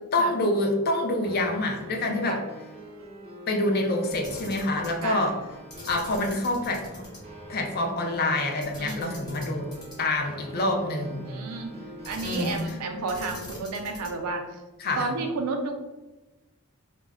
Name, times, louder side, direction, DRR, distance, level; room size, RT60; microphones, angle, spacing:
voice 1, 0.1-2.4 3.5-5.4 5.9-7.0 7.5-9.7 10.0-11.3 12.2-12.8 14.8-15.1, left 2 dB, 45° left, 2 dB, 0.4 m, -26 dB
sound 1, 1.2-13.2, right 1 dB, 25° right, 0.5 m, -45 dB
Camera, 4.1-5.0 5.7-7.2 7.5-7.6 8.6-10.2 12.0-12.8 13.1-14.3, left 1 dB, 20° left, 0.7 m, -43 dB
voice 2, 8.8-9.2 11.0-11.8 12.1-14.4 15.0-15.7, right 3 dB, 85° right, 3 dB, 0.5 m, -31 dB
2.2 x 2.1 x 3.4 m, 1.1 s
head